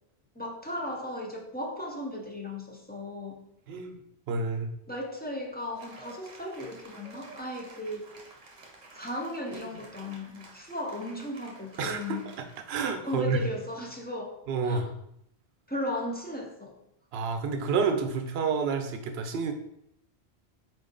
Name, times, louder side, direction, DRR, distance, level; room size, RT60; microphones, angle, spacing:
voice 1, 0.4-3.4 4.9-8.1 8.9-12.2 13.0-14.9 15.7-16.8, left 1 dB, 15° left, -1 dB, 0.4 m, -36 dB
voice 2, 4.3-4.7 11.8-12.2 12.7-13.4 14.5-14.9 17.1-19.5, right 5 dB, 75° right, 6 dB, 0.8 m, -29 dB
Cheering / Applause, 5.7-13.3, right 3 dB, 45° right, 0.8 m, -52 dB
4.4 x 2.6 x 3.8 m, 0.78 s
omnidirectional pair, 1.1 m